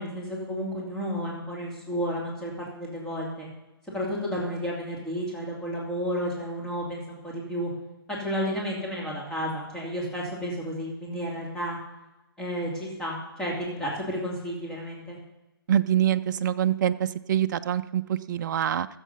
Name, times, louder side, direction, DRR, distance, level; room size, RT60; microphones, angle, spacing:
voice 1, 0.0-3.5 3.9-7.7 8.1-11.8 12.4-15.2, equal, 5° left, -5 dB, 2.7 m, -32 dB
voice 2, 15.7-18.9, right 10 dB, 50° right, 11 dB, 0.5 m, -25 dB
14.5 x 7.5 x 5.6 m, 1.0 s
hypercardioid pair, 140°, 13 cm